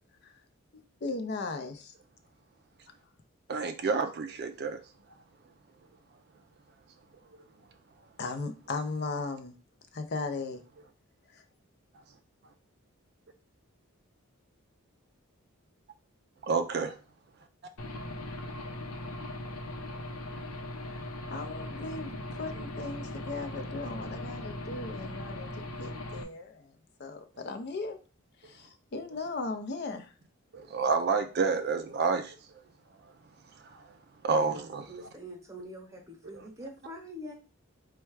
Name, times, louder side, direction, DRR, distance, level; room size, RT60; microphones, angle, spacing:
voice 1, 1.0-1.9 8.2-9.6 9.9-10.6 11.3-11.4 20.9-21.0 21.3-25.5 25.8-26.7 27.0-28.0 28.4-30.1, left 3 dB, 50° left, 7 dB, 0.5 m, -37 dB
voice 2, 3.5-4.8 16.5-16.9 30.5-32.4 33.6-33.8 34.2-34.8, right 4 dB, 45° right, 8 dB, 0.4 m, -29 dB
Aircraft / Engine, 17.8-26.2, left 1 dB, 90° left, 0.7 m, -39 dB
voice 3, 34.9-37.3, equal, 15° right, 2 dB, 1.0 m, -44 dB
4.3 x 2.3 x 4.6 m, 0.35 s
head